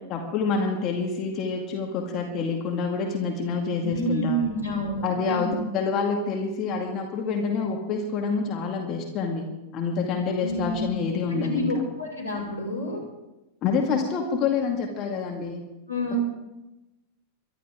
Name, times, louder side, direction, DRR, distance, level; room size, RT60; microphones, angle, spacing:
voice 1, 0.1-4.4 5.0-9.5 9.7-11.8 13.6-15.6, left 5 dB, 35° left, 1 dB, 2.3 m, -27 dB
voice 2, 3.8-5.6 10.4-11.0 11.3-13.0 15.9-16.2, equal, 85° left, -3 dB, 5.7 m, -29 dB
23.0 x 12.5 x 3.8 m, 0.99 s
figure-of-eight pair, 90°, 0 cm